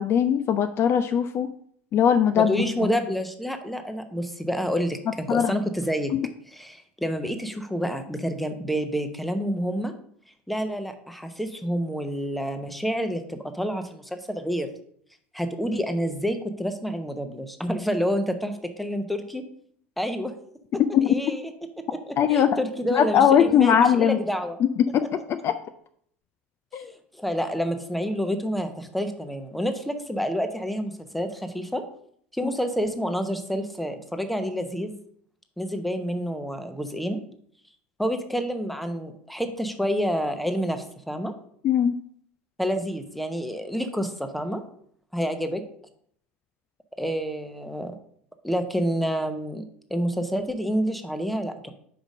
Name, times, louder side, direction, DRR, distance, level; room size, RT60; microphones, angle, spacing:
voice 1, 0.0-1.5 1.9-2.6 5.3-5.6 6.1-6.2 20.9-21.2 22.2-22.6 22.9-24.2 24.6-25.6 26.7-26.9 41.6-42.0, left 8 dB, 40° left, 9 dB, 0.4 m, -20 dB
voice 2, 2.3-6.1 6.5-9.9 10.5-14.7 15.3-19.4 20.0-20.3 20.7-21.5 21.8-24.6 27.1-31.8 32.3-35.0 35.6-37.2 38.0-41.3 42.6-44.6 45.1-45.6 47.0-47.9 48.4-49.6 49.9-51.7, equal, ahead, 7 dB, 0.8 m, -28 dB
5.1 x 5.1 x 5.1 m, 0.65 s
figure-of-eight pair, 75°, 7 cm